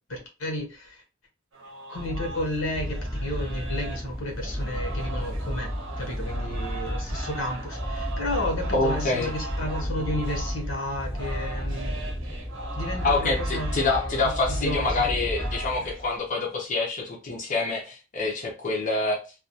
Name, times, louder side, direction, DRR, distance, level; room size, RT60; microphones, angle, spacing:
voice 1, 0.1-1.0 1.9-5.7 6.0-12.0 12.8-14.1 14.5-15.1, left 1 dB, 85° left, 0.8 m, -32 dB
sound 1, 1.5-16.2, right 3 dB, 75° right, 0.7 m, -40 dB
sound 2, 1.9-16.2, equal, 5° right, 0.6 m, -32 dB
voice 2, 8.7-9.3 13.0-19.2, left 3 dB, 40° left, 0.5 m, -26 dB
2.3 x 2.2 x 2.6 m
head